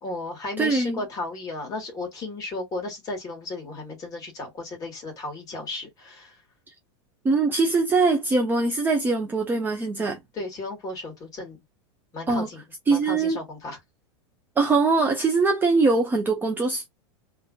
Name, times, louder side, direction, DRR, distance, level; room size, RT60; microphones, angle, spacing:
voice 1, 0.0-6.3 10.3-11.6 12.1-12.6 12.9-13.8, left 2 dB, 25° left, 1.5 m, -34 dB
voice 2, 0.6-1.0 7.2-10.2 12.3-12.5 12.9-13.4 14.6-16.9, right 3 dB, 15° right, 0.5 m, -22 dB
2.8 x 2.5 x 2.4 m
supercardioid pair, 145°, 15 cm